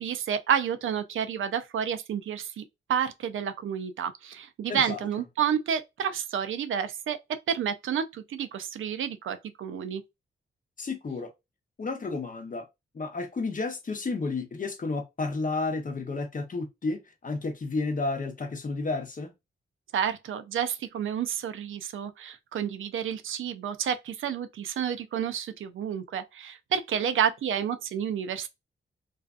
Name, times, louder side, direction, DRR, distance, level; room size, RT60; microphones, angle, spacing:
voice 1, 0.0-2.6 2.9-7.2 7.5-10.0 19.9-28.5, right 8 dB, 75° right, 0.4 m, -30 dB
voice 2, 4.7-5.0 10.8-11.3 11.8-12.7 12.9-19.3, left 3 dB, 40° left, 0.7 m, -31 dB
2.5 x 2.3 x 2.4 m
cardioid pair, 70°, 21 cm